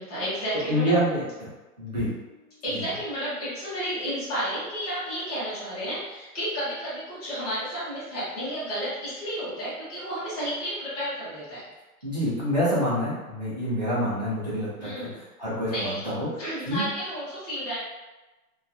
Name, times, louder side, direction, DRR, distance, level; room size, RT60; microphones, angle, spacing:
voice 1, 0.0-0.9 2.6-11.6 14.8-15.2 15.7-16.0 16.4-17.8, equal, 25° left, -11 dB, 0.8 m, -32 dB
voice 2, 0.7-1.5 1.8-2.2 2.7-2.8 12.0-14.9 15.4-16.9, equal, 30° right, -10 dB, 0.4 m, -27 dB
2.3 x 2.2 x 2.6 m, 1.1 s
hypercardioid pair, 180°, 45 cm